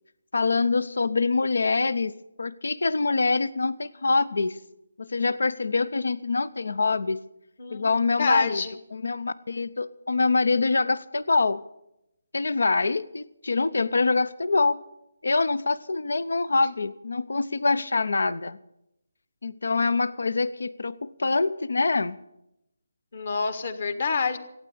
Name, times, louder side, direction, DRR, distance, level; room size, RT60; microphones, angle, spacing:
voice 1, 0.3-4.6 5.0-7.2 7.7-8.6 8.9-11.6 12.3-14.8 15.2-18.6 19.4-22.2, left 3 dB, 70° left, 18 dB, 0.6 m, -25 dB
voice 2, 7.6-8.7 23.1-24.4, left 5 dB, 55° left, 10 dB, 1.7 m, -28 dB
15.5 x 9.3 x 8.5 m, 0.86 s
figure-of-eight pair, 155°, 0 cm